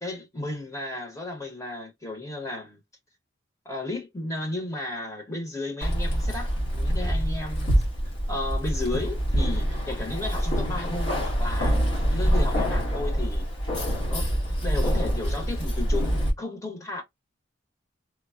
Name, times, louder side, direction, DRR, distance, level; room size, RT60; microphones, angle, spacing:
voice 1, 0.0-2.8 3.6-7.7 8.3-13.5 14.1-14.3 14.6-17.0, left 2 dB, 15° left, 0.8 m, -34 dB
Keys jangling, 5.8-16.3, equal, 70° left, 1.3 m, -25 dB
3.2 x 2.1 x 2.3 m
head